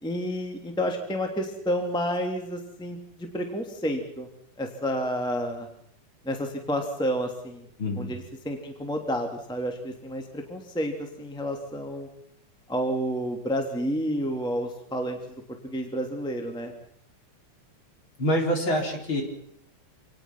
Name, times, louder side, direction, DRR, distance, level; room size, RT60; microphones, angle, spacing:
voice 1, 0.0-4.3 4.6-5.7 6.2-7.7 8.0-12.1 12.7-16.7, equal, ahead, 3 dB, 2.5 m, -30 dB
voice 2, 7.8-8.1 18.2-19.2, equal, 40° left, 2 dB, 4.6 m, -26 dB
27.5 x 19.5 x 6.1 m, 0.70 s
omnidirectional pair, 3.5 m